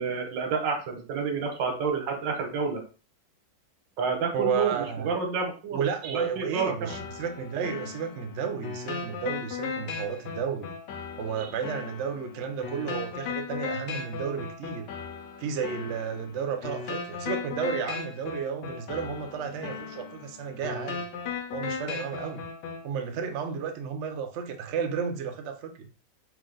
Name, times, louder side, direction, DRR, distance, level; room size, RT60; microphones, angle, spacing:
voice 1, 0.0-2.8 4.0-7.0 11.4-11.5, right 5 dB, 90° right, 3 dB, 1.7 m, -29 dB
voice 2, 4.3-5.1 5.7-10.8 11.2-14.9 15.4-21.1 21.5-22.5 22.8-25.9, right 6 dB, 65° right, 5 dB, 0.7 m, -32 dB
sound 1, 6.9-22.9, left 5 dB, 90° left, 1.4 m, -37 dB
4.5 x 2.5 x 3.8 m, 0.37 s
omnidirectional pair, 1.9 m